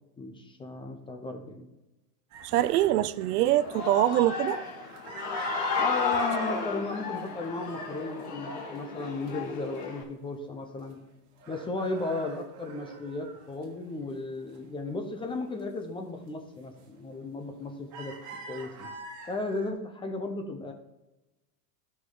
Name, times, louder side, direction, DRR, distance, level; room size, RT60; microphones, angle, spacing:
voice 1, 0.2-1.7 5.8-11.0 11.5-18.9 19.3-20.7, left 3 dB, 10° left, 0.6 m, -35 dB
sound 1, 2.3-6.6 7.1-7.6 7.9-9.3 9.7-9.8 10.1-11.1 11.4-14.2 14.5-15.6 16.1-16.3 16.8-17.1 17.5-19.7, right 4 dB, 35° right, 1.9 m, -45 dB
voice 2, 2.4-4.6, right 14 dB, 70° right, 0.6 m, -24 dB
Human voice / Cheering, 3.4-10.0, left 4 dB, 35° left, 1.8 m, -33 dB
12.5 x 5.6 x 3.9 m
supercardioid pair, 140°, 49 cm